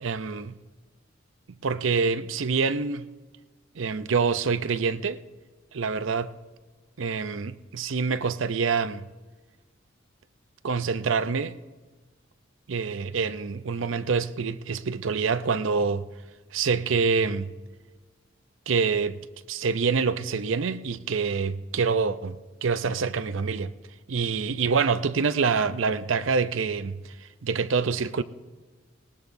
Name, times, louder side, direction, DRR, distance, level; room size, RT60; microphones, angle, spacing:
voice 1, 0.0-0.5 1.6-3.1 3.8-5.2 5.7-6.3 7.0-9.0 10.6-11.6 12.7-16.1 16.5-17.5 18.7-19.2 19.5-23.7 24.1-28.2, right 5 dB, 70° right, 0.6 m, -26 dB
19.5 x 19.0 x 2.7 m
head